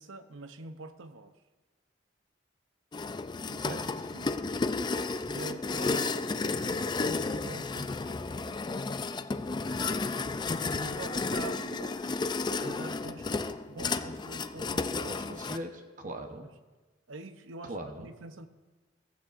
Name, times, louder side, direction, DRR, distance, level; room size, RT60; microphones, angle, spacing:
voice 1, 0.0-1.4 3.4-4.4 5.3-8.7 9.9-10.1 10.7-15.1 17.1-18.5, right 3 dB, 80° right, 10 dB, 0.7 m, -45 dB
sound 1, 2.9-15.6, left 3 dB, 25° left, 0.3 m, -32 dB
voice 2, 15.0-16.5 17.6-18.1, right 1 dB, 40° right, 5 dB, 0.9 m, -40 dB
15.0 x 15.0 x 2.5 m, 1.3 s
head